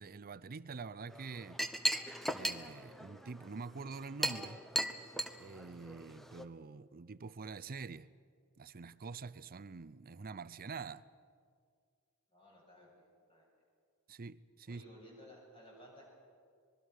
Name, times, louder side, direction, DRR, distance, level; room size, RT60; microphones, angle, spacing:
voice 1, 0.0-1.6 2.3-4.6 5.4-8.1 8.6-11.1 14.1-14.8, right 4 dB, 40° right, 0.6 m, -46 dB
Chink clink, 1.1-6.4, right 1 dB, ahead, 0.9 m, -38 dB
voice 2, 12.3-13.4 14.7-16.0, equal, 25° left, 7.8 m, -57 dB
25.5 x 21.5 x 6.4 m
head